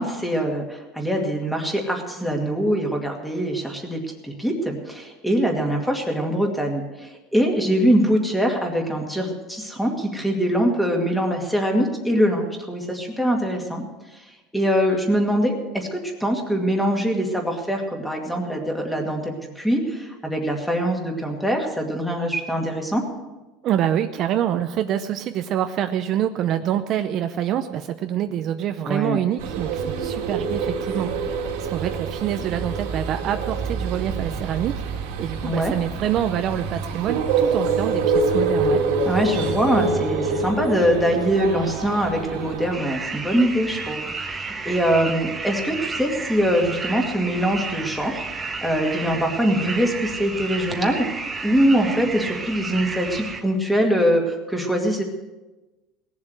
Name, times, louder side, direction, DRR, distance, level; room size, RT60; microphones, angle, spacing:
voice 1, 0.0-13.8 14.5-23.0 28.9-29.2 35.4-35.7 39.1-55.0, equal, 5° left, 1 dB, 2.2 m, -23 dB
voice 2, 23.6-38.8, right 10 dB, 45° right, 8 dB, 0.6 m, -26 dB
sound 1, 29.4-42.7, right 4 dB, 80° right, 2.4 m, -26 dB
sound 2, 42.7-53.4, right 4 dB, 15° right, 1.2 m, -32 dB
18.0 x 7.3 x 7.9 m, 1.1 s
cardioid pair, 150°, 0 cm